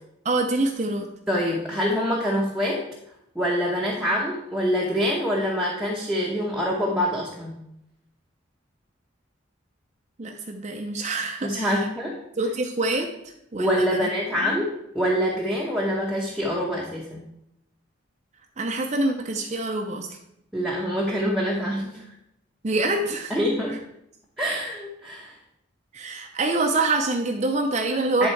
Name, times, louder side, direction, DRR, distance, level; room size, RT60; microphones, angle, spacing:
voice 1, 0.2-1.1 10.2-11.9 12.4-14.1 14.4-14.6 18.6-20.1 22.6-23.3 23.7-23.8 25.9-28.3, right 2 dB, 35° right, 3 dB, 0.6 m, -26 dB
voice 2, 1.3-2.8 3.3-7.6 11.4-12.2 13.6-17.2 20.5-22.0 23.3-23.8 24.4-25.4 28.2-28.3, equal, ahead, -4 dB, 0.9 m, -25 dB
10.5 x 3.7 x 4.5 m, 0.80 s
head